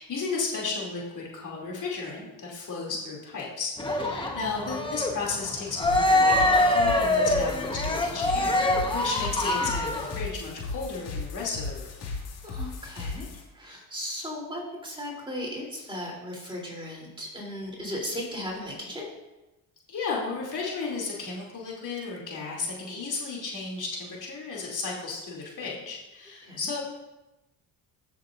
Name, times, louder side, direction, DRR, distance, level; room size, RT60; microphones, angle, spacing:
voice 1, 0.0-11.9 19.9-26.8, left 4 dB, 55° left, -3 dB, 2.8 m, -34 dB
Cheering, 3.8-10.2, left 1 dB, 15° left, 1.1 m, -24 dB
sound 1, 5.8-13.4, left 3 dB, 90° left, 2.2 m, -36 dB
voice 2, 12.2-19.1 26.4-26.7, left 1 dB, 15° right, -3 dB, 3.2 m, -36 dB
15.0 x 6.8 x 2.5 m, 1.0 s
cardioid pair, 115°, 38 cm